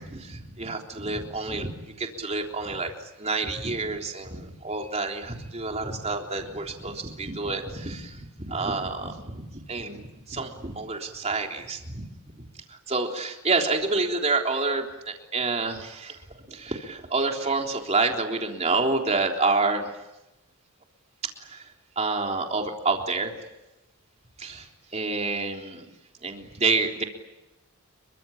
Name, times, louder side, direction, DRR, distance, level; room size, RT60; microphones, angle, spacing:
voice 1, 0.0-2.9 3.2-12.0 12.4-16.2 16.5-19.9 21.2-21.7 22.0-23.3 24.4-25.9 26.2-27.0, right 3 dB, 30° right, 2 dB, 3.6 m, -28 dB
28.5 x 24.0 x 8.7 m, 0.97 s
head